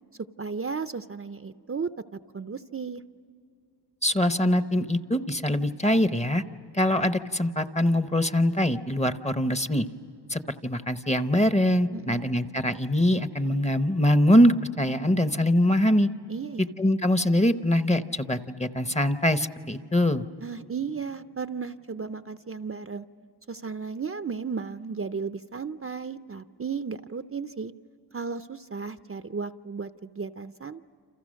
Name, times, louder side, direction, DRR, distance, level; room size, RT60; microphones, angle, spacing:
voice 1, 0.4-3.0 11.9-12.3 16.3-16.7 20.4-23.0 23.5-27.7 28.1-30.8, right 5 dB, 35° right, 10 dB, 0.5 m, -34 dB
voice 2, 4.0-6.4 6.7-9.9 10.3-16.1 16.8-20.3, left 1 dB, 15° left, 10 dB, 0.8 m, -23 dB
29.0 x 27.5 x 6.4 m, 2.4 s
wide cardioid pair, 105°, 41 cm